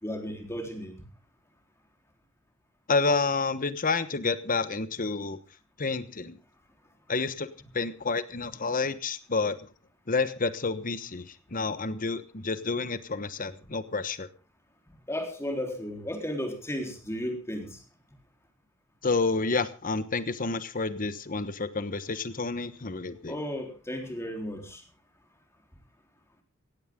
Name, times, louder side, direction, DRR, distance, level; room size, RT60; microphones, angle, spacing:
voice 1, 0.0-1.0 15.1-17.8 23.3-24.8, equal, 15° left, 3 dB, 4.0 m, -34 dB
voice 2, 2.9-5.4 5.8-6.4 7.1-7.5 7.7-9.7 10.1-14.3 19.0-23.4, left 4 dB, 40° left, 13 dB, 1.2 m, -29 dB
17.0 x 16.0 x 3.8 m, 0.33 s
head